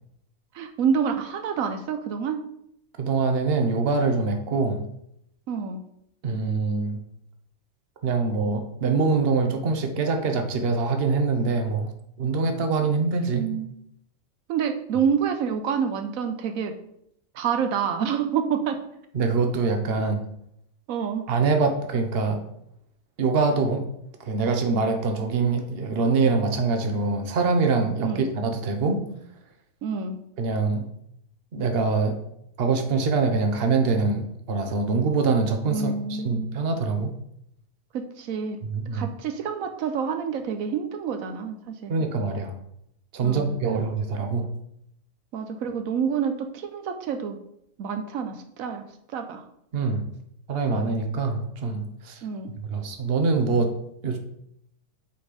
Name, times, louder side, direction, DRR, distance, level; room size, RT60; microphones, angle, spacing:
voice 1, 0.5-2.4 5.5-5.8 12.8-12.9 13.3-13.7 14.5-16.7 17.3-18.8 20.9-21.2 28.0-28.2 29.8-30.2 35.7-36.6 37.9-38.6 38.9-41.9 43.2-43.9 45.3-47.4 47.8-48.8 49.1-49.4 52.2-52.5, right 7 dB, 85° right, 7 dB, 1.2 m, -28 dB
voice 2, 3.0-4.9 6.2-7.0 8.0-11.9 12.2-13.5 19.1-20.3 21.3-22.4 23.2-23.9 24.2-29.0 30.4-30.8 31.5-32.2 32.6-37.1 38.6-39.1 41.9-42.5 43.1-44.5 49.7-50.1 50.5-52.2 52.7-53.7 54.0-54.2, right 4 dB, 50° right, 5 dB, 1.1 m, -24 dB
8.2 x 4.3 x 4.9 m, 0.76 s
omnidirectional pair, 1.4 m